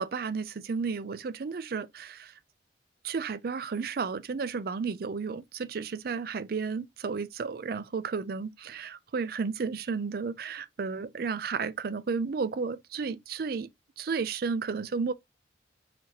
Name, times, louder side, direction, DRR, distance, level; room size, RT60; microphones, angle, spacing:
voice 1, 0.0-2.3 3.0-13.7 14.0-15.1, right 5 dB, 55° right, 0.4 m, -33 dB
3.9 x 3.1 x 2.8 m
head